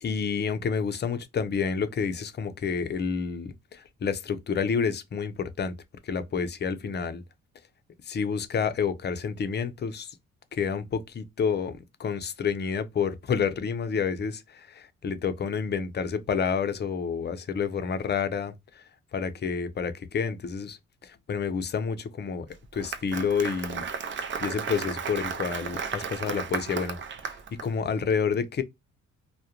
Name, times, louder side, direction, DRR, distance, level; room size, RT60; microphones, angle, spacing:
voice 1, 0.0-5.7 6.0-7.2 8.1-10.1 10.5-18.8 19.1-22.5 22.7-23.8 24.4-27.0 27.2-28.6, left 6 dB, 35° left, 0.5 m, -29 dB
Applause, 22.5-27.7, right 6 dB, 40° right, 0.5 m, -34 dB
2.3 x 2.1 x 2.8 m
cardioid pair, 90°, 30 cm